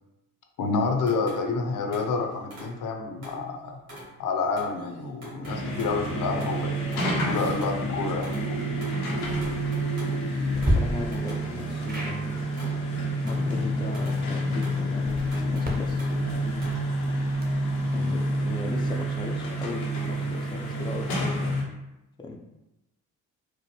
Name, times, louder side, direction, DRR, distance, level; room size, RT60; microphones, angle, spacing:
voice 1, 0.6-3.8 4.2-8.3, left 4 dB, 50° left, 3 dB, 0.7 m, -29 dB
sound 1, 1.0-3.5 3.9-16.7, equal, 80° right, 1.4 m, -47 dB
sound 2, 5.4-21.6, right 1 dB, 85° left, 0.8 m, -28 dB
sound 3, 9.2-9.5 10.5-10.7 11.9-12.2 14.9-17.7, right 1 dB, 20° right, 1.1 m, -32 dB
voice 2, 10.5-12.4 13.2-17.0 17.9-21.5 22.2-22.4, left 3 dB, 10° left, 1 dB, 0.5 m, -37 dB
4.5 x 2.1 x 3.3 m, 0.94 s
hypercardioid pair, 45°, 41 cm